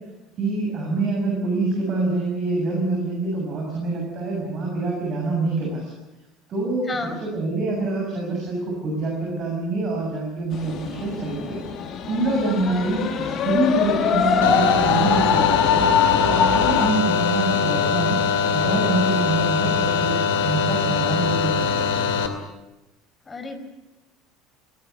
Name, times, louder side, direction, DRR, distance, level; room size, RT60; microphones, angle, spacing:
voice 1, 0.4-5.9 6.5-11.6 12.1-15.9 16.2-18.2 18.5-22.1, right 2 dB, 40° right, 0 dB, 7.2 m, -25 dB
voice 2, 6.9-7.2 23.2-23.6, left 3 dB, 20° left, 7 dB, 4.7 m, -31 dB
sound 1, 10.5-16.9, left 7 dB, 45° left, 2.5 m, -22 dB
sound 2, 14.4-22.3, left 6 dB, 70° left, 2.4 m, -22 dB
23.0 x 19.0 x 8.1 m, 1.0 s
figure-of-eight pair, 65°, 0 cm